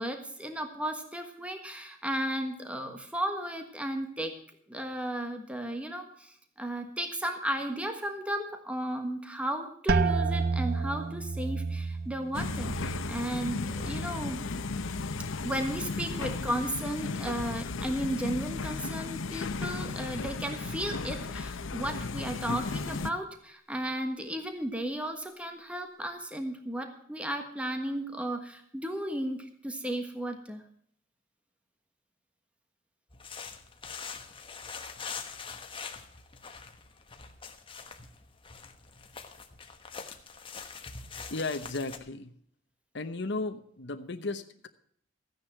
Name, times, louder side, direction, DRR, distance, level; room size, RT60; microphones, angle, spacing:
voice 1, 0.0-4.3 4.7-14.4 15.4-30.6, right 1 dB, 5° right, 5 dB, 1.4 m, -34 dB
sound 1, 9.9-15.5 15.8-16.5 17.1-17.5, right 4 dB, 50° right, 0.6 m, -32 dB
sound 2, 12.3-23.1, left 4 dB, 85° left, 0.8 m, -35 dB
sound 3, 33.1-42.0, left 5 dB, 25° left, 1.2 m, -44 dB
voice 2, 41.3-42.3 42.9-44.7, left 3 dB, 60° left, 7 dB, 1.0 m, -35 dB
14.5 x 9.6 x 5.8 m, 0.64 s
head